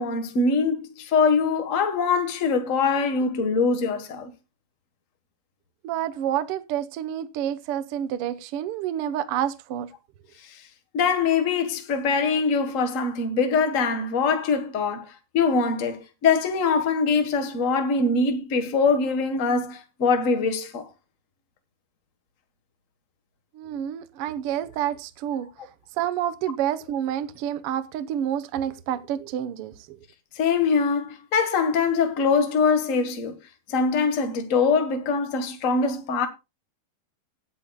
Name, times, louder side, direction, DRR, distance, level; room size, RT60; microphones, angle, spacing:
voice 1, 0.0-4.3 10.9-15.1 15.3-20.9 25.3-25.5 30.4-33.4 33.7-36.3, left 4 dB, 75° left, 0.7 m, -23 dB
voice 2, 5.8-9.9 23.6-25.5 26.0-29.7, right 10 dB, 70° right, 1.4 m, -28 dB
18.0 x 9.1 x 2.3 m
omnidirectional pair, 3.8 m